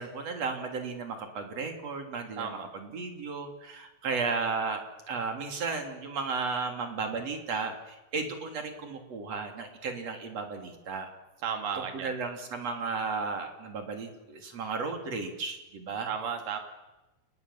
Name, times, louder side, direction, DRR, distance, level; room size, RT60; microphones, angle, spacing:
voice 1, 0.0-11.1 11.9-16.1, right 4 dB, 50° right, 5 dB, 4.2 m, -34 dB
voice 2, 2.4-2.7 11.4-12.2 16.1-16.6, right 7 dB, 80° right, 5 dB, 4.1 m, -34 dB
29.0 x 20.5 x 7.5 m, 1.0 s
omnidirectional pair, 3.8 m